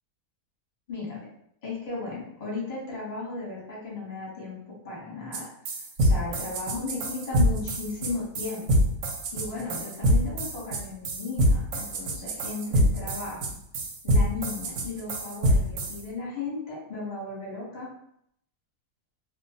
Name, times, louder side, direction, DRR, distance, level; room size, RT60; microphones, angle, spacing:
voice 1, 0.9-1.3 1.6-5.5 6.0-8.7 9.3-13.4 14.0-17.9, left 3 dB, 30° left, -5 dB, 0.9 m, -35 dB
sound 1, 5.3-5.4 5.6-16.0, equal, 70° right, 0.8 m, -24 dB
2.5 x 2.1 x 2.7 m, 0.72 s
omnidirectional pair, 1.6 m